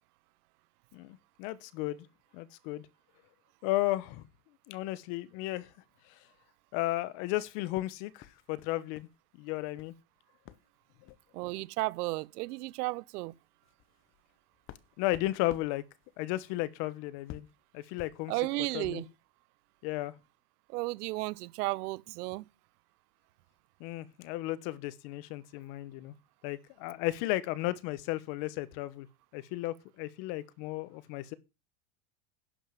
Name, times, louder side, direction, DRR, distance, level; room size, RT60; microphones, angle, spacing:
voice 1, 0.9-2.1 2.3-2.9 3.6-4.2 4.7-5.7 6.1-6.2 6.7-9.1 9.3-9.9 15.0-15.8 16.2-17.5 17.7-18.3 18.7-19.0 19.8-20.1 23.8-26.1 26.4-29.1 29.3-31.3, left 17 dB, 55° left, 1.1 m, -34 dB
sound 1, 7.7-9.2 9.4-10.0 10.5-10.7 11.0-11.3 12.2-12.3 12.6-12.8 13.3-19.2, left 11 dB, 25° left, 0.7 m, -53 dB
voice 2, 11.3-13.3 18.3-19.1 20.7-22.4, right 21 dB, 80° right, 0.7 m, -33 dB
11.0 x 5.4 x 7.4 m
supercardioid pair, 145°, 46 cm